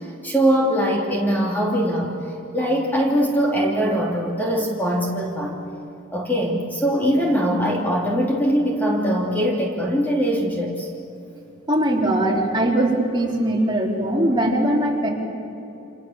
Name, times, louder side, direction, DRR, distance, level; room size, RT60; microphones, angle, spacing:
voice 1, 0.2-2.1 2.5-5.7 6.1-10.9, equal, 10° left, -2 dB, 3.0 m, -21 dB
voice 2, 11.7-15.1, right 1 dB, 25° right, -2 dB, 3.8 m, -20 dB
29.5 x 27.5 x 7.3 m, 2.9 s
head